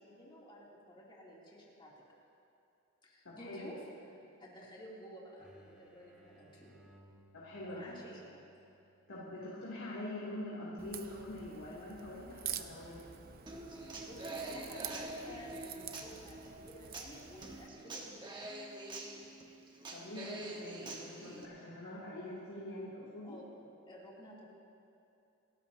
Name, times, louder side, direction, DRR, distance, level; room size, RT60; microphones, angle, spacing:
voice 1, 0.0-1.9 3.0-3.8 4.4-6.7 7.6-8.2 14.0-18.6 23.2-24.4, equal, 25° left, -5 dB, 3.0 m, -52 dB
voice 2, 3.2-3.7 7.3-7.8 9.1-13.0 19.9-23.4, left 1 dB, 75° left, -8 dB, 3.0 m, -44 dB
sound 1, 5.4-10.9, right 1 dB, 5° right, 1.8 m, -65 dB
Crack, 10.8-17.7, right 9 dB, 45° right, 0.6 m, -47 dB
Human voice / Acoustic guitar, 13.5-21.4, right 2 dB, 20° right, 1.4 m, -45 dB
29.0 x 13.5 x 2.9 m, 2.7 s
head